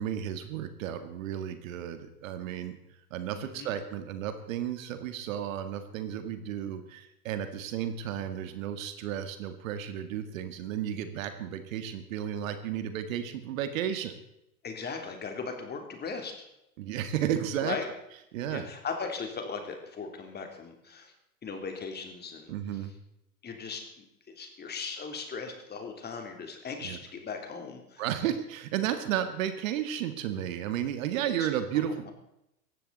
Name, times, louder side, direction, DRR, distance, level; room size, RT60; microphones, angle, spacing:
voice 1, 0.0-2.8 3.1-14.2 16.8-17.8 18.3-18.7 22.5-22.9 26.8-27.0 28.0-32.1, right 10 dB, 55° right, 9 dB, 2.0 m, -33 dB
voice 2, 3.3-3.7 14.6-16.5 17.6-17.9 18.5-21.1 21.4-22.5 23.4-23.8 24.3-28.0 31.4-31.5, left 5 dB, 20° left, 4 dB, 3.3 m, -38 dB
18.0 x 15.0 x 4.1 m, 0.83 s
hypercardioid pair, 100°, 46 cm